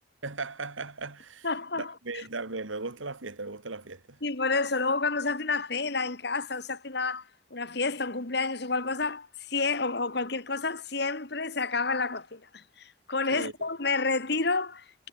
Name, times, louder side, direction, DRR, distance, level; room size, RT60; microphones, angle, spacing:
voice 1, 0.2-1.5 1.8-4.2 13.3-13.5, right 3 dB, 80° right, 2.1 m, -37 dB
voice 2, 1.4-1.9 4.2-7.2 7.5-15.1, left 3 dB, 55° left, 2.0 m, -29 dB
head